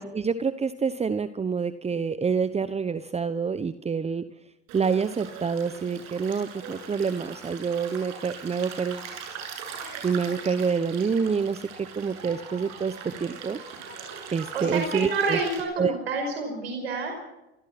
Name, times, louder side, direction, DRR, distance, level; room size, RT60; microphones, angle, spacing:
voice 1, 0.0-4.3 4.7-9.1 10.0-12.9 13.2-13.6 14.3-15.4 15.8-15.9, right 5 dB, 20° right, 13 dB, 1.1 m, -27 dB
Stream, 4.7-15.6, right 6 dB, 60° right, 7.6 m, -41 dB
voice 2, 14.5-17.1, right 3 dB, 85° right, 3 dB, 5.3 m, -28 dB
27.0 x 18.0 x 6.1 m, 0.95 s
hypercardioid pair, 75°, 30 cm